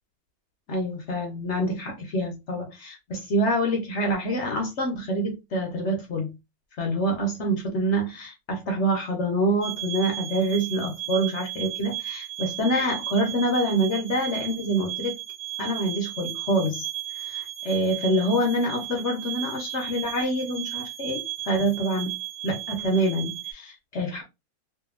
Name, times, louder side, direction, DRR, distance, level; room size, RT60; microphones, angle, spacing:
voice 1, 0.7-6.3 6.8-15.2 15.6-16.8 17.1-22.1 22.4-24.2, right 1 dB, 60° left, 0.9 m, -26 dB
sound 1, 9.6-23.5, right 16 dB, 30° right, 0.6 m, -35 dB
2.7 x 2.6 x 2.4 m
omnidirectional pair, 1.6 m